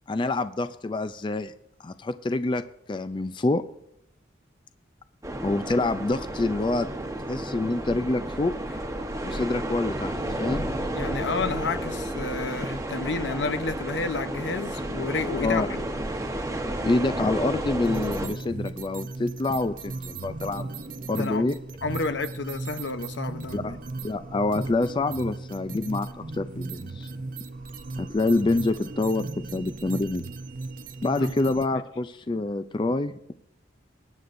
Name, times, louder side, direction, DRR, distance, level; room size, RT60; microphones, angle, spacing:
voice 1, 0.1-1.5 1.8-2.6 2.9-3.6 5.4-6.9 7.3-8.5 9.2-10.7 15.3-15.7 16.8-20.7 21.1-21.6 23.5-23.7 24.0-27.1 28.0-30.2 31.0-33.2, left 2 dB, 25° left, 11 dB, 0.4 m, -26 dB
sound 1, 5.2-18.3, right 1 dB, 20° right, 1.0 m, -32 dB
Scratching (performance technique), 8.6-10.9 11.9-16.2, left 1 dB, 65° left, 5.4 m, -49 dB
voice 2, 10.9-15.8 21.1-21.4 21.8-23.8 31.1-31.3, left 3 dB, 80° left, 9 dB, 0.8 m, -30 dB
sound 2, 17.8-31.7, right 3 dB, 50° right, 0.6 m, -37 dB
20.5 x 9.4 x 2.6 m, 0.78 s
head